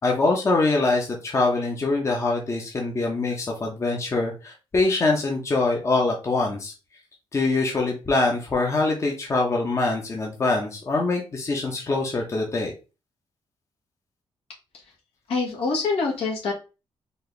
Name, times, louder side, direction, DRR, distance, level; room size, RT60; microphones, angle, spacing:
voice 1, 0.0-6.7 7.3-12.7, left 3 dB, 30° left, 0 dB, 1.0 m, -24 dB
voice 2, 15.3-16.5, left 4 dB, 75° left, -2 dB, 1.7 m, -25 dB
4.4 x 2.8 x 3.3 m, 0.31 s
cardioid pair, 125°, 10 cm